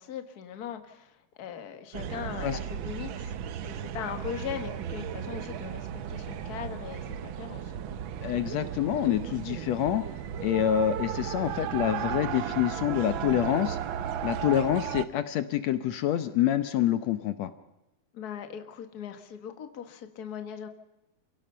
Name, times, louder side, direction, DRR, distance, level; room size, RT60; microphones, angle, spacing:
voice 1, 0.0-7.7 18.1-20.7, left 8 dB, 40° left, 7 dB, 1.7 m, -40 dB
sound 1, 1.9-15.1, right 9 dB, 80° right, 1.1 m, -35 dB
voice 2, 8.2-10.0 10.4-13.8 14.2-17.5, left 11 dB, 70° left, 10 dB, 2.0 m, -27 dB
29.5 x 17.0 x 5.6 m, 0.93 s
omnidirectional pair, 3.3 m